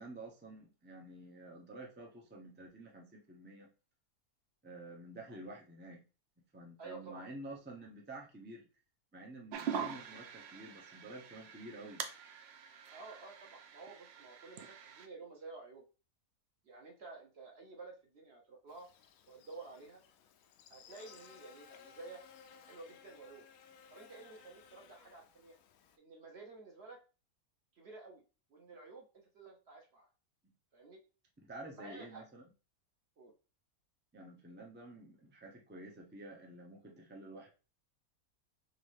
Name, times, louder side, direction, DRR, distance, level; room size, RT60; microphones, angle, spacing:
voice 1, 0.0-3.7 4.6-6.0 6.4-8.7 9.1-12.1 30.4-30.5 31.4-32.4 34.1-37.5, right 2 dB, 15° right, -1 dB, 0.3 m, -50 dB
voice 2, 6.8-7.3 12.9-15.9 16.6-18.9 19.3-20.0 20.7-22.2 22.7-23.4 23.9-25.6 26.0-27.0 27.8-28.2 28.5-30.1 30.7-31.0 31.8-32.2 33.2-33.3, right 3 dB, 50° right, 2 dB, 0.9 m, -52 dB
sound 1, 9.5-15.1, right 7 dB, 70° right, 0.6 m, -44 dB
Buzz, 18.7-26.0, left 7 dB, 70° left, 1.0 m, -59 dB
3.9 x 3.2 x 3.2 m, 0.33 s
omnidirectional pair, 1.7 m